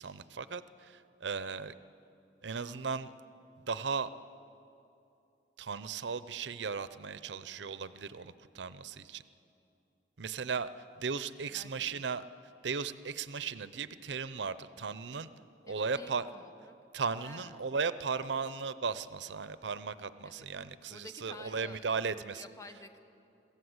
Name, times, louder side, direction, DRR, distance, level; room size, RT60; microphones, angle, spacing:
voice 1, 0.0-1.7 2.4-3.1 3.7-4.1 5.6-9.2 10.2-12.2 12.6-15.3 15.6-16.3 16.9-22.5, right 5 dB, 90° right, 14 dB, 0.6 m, -36 dB
voice 2, 11.5-12.0 15.7-16.7 17.2-17.7 20.2-23.0, left 2 dB, 20° left, 7 dB, 1.0 m, -52 dB
22.5 x 15.5 x 7.9 m, 2.7 s
head